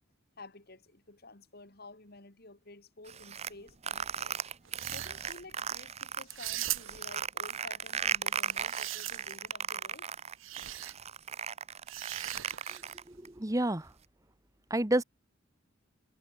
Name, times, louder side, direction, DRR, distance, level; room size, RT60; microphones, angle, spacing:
voice 1, 0.4-4.4 4.9-10.1, left 2 dB, 50° left, 2.9 m, -52 dB
sound 1, 3.1-6.2 6.6-13.3, right 7 dB, 30° right, 0.7 m, -36 dB
sound 2, 4.6-5.4 6.3-7.1 8.3-9.5 10.4-10.9 11.9-13.0, right 15 dB, 70° right, 1.1 m, -39 dB
voice 2, 13.1-13.9 14.7-15.0, right 1 dB, 15° right, 1.2 m, -29 dB
head